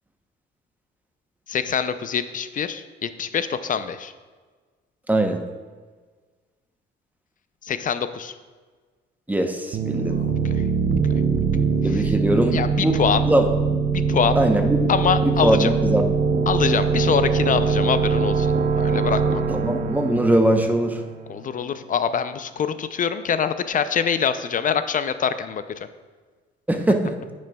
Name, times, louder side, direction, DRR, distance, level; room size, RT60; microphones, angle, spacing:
voice 1, 1.5-4.1 7.6-8.4 10.1-10.3 11.9-12.0 12.5-13.2 13.9-14.4 14.9-15.7 16.5-19.4 21.3-25.6, left 7 dB, 45° left, 12 dB, 0.4 m, -24 dB
voice 2, 5.1-5.4 9.3-10.2 11.8-12.9 13.2-13.5 14.4-14.8 15.2-16.5 19.5-21.0 26.7-27.2, right 1 dB, 10° right, 4 dB, 0.8 m, -21 dB
sound 1, 9.7-21.3, right 5 dB, 45° right, 0.5 m, -22 dB
10.0 x 6.2 x 2.3 m, 1.4 s
cardioid pair, 90°, 20 cm